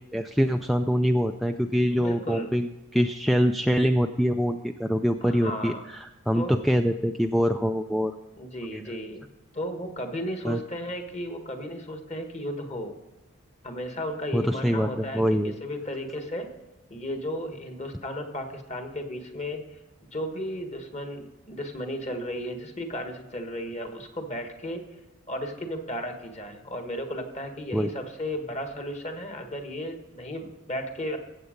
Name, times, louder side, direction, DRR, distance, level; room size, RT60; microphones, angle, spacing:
voice 1, 0.1-8.1 8.7-8.8 10.4-10.6 14.3-15.5 27.7-27.9, equal, ahead, 6 dB, 0.3 m, -24 dB
voice 2, 1.9-2.5 5.2-5.8 6.3-6.6 8.4-9.3 9.5-12.9 13.6-16.5 16.9-19.8 20.1-24.9 25.3-31.2, equal, 30° left, 5 dB, 1.5 m, -34 dB
15.0 x 8.2 x 5.1 m, 1.1 s
head